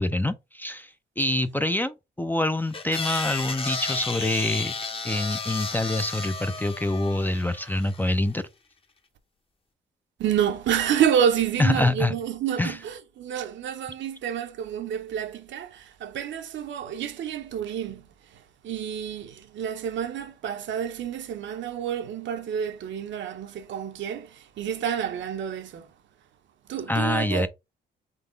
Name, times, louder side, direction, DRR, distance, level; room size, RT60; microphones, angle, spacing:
voice 1, 0.0-4.7 5.0-8.5 11.6-12.2 12.6-12.8 26.9-27.5, left 1 dB, 10° left, 0.4 m, -26 dB
sound 1, 2.7-8.1, left 4 dB, 30° left, 0.8 m, -33 dB
voice 2, 10.2-25.9 26.7-27.5, right 9 dB, 70° right, 0.7 m, -29 dB
3.9 x 2.9 x 3.9 m
cardioid pair, 90°, 20 cm